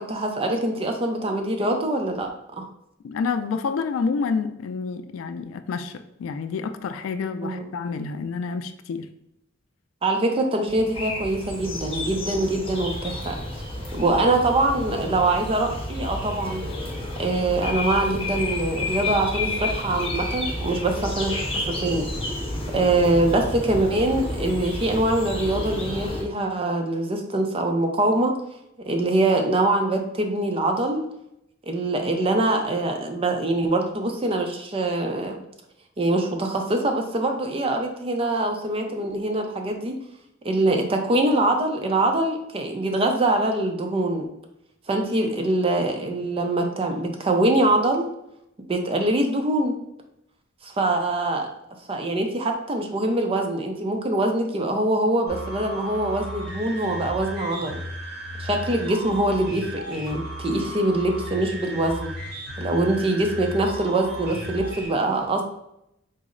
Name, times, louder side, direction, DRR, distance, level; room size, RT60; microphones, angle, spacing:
voice 1, 0.0-2.3 2.6-2.7 7.4-7.7 10.0-13.4 13.9-16.6 17.2-22.1 22.7-28.3 28.9-31.0 31.6-35.4 36.0-40.0 40.4-44.3 44.9-48.1 48.7-49.7 50.6-51.5 51.9-57.8 58.4-62.1 62.6-65.4, right 2 dB, 30° right, 3 dB, 0.5 m, -23 dB
voice 2, 3.0-9.1, left 5 dB, 80° left, 10 dB, 0.3 m, -28 dB
sound 1, 10.7-26.2, left 2 dB, 30° left, 0.9 m, -31 dB
sound 2, 55.3-64.9, right 1 dB, 55° right, 1.2 m, -35 dB
4.0 x 2.0 x 3.7 m, 0.80 s
head